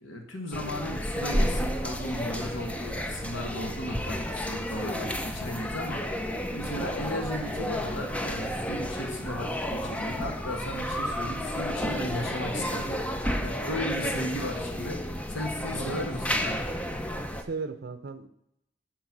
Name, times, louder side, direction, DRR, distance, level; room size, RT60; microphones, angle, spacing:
voice 1, 0.0-6.0 6.5-13.0 13.4-15.0 15.3-16.8, left 1 dB, 85° left, 3 dB, 1.6 m, -36 dB
sound 1, 0.5-17.4, equal, 5° left, 0.6 m, -31 dB
voice 2, 15.7-16.1 17.5-18.3, right 4 dB, 55° right, 11 dB, 0.6 m, -36 dB
10.5 x 4.5 x 6.0 m, 0.80 s
head